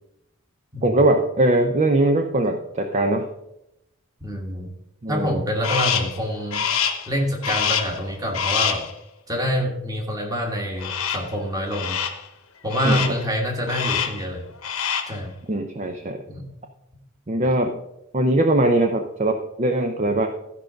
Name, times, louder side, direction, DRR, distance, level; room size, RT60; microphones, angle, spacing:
voice 1, 0.8-3.3 5.0-5.4 12.8-13.0 15.5-16.2 17.3-17.8 18.1-20.3, right 1 dB, 30° right, 6 dB, 0.5 m, -21 dB
voice 2, 4.2-4.7 5.1-6.7 7.1-8.8 9.3-12.0 12.6-14.4 15.1-15.3 16.3-16.5 17.4-17.5, equal, 15° right, 2 dB, 1.5 m, -26 dB
Crow, 5.6-6.2 6.5-7.1 7.4-8.0 8.3-8.9 10.8-11.3 11.7-12.2 12.7-13.2 13.7-14.2 14.5-15.2, left 7 dB, 75° left, 1.1 m, -25 dB
13.5 x 5.2 x 5.1 m, 0.85 s
head